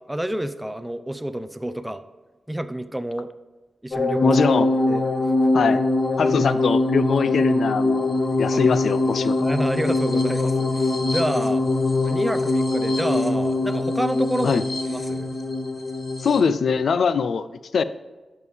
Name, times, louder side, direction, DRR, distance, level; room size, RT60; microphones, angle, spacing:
voice 1, 0.1-2.0 2.5-3.3 3.8-4.3 4.8-5.0 5.4-5.5 8.5-8.7 9.4-11.6 12.0-14.6 14.9-15.4, right 1 dB, 5° right, 11 dB, 0.5 m, -28 dB
sound 1, 3.9-16.4, left 2 dB, 35° left, 1.2 m, -22 dB
voice 2, 4.2-4.7 5.5-5.8 6.2-9.4 14.4-14.6 16.2-17.8, left 6 dB, 75° left, 14 dB, 0.4 m, -22 dB
11.0 x 7.1 x 3.5 m, 1.2 s
wide cardioid pair, 120°, 0 cm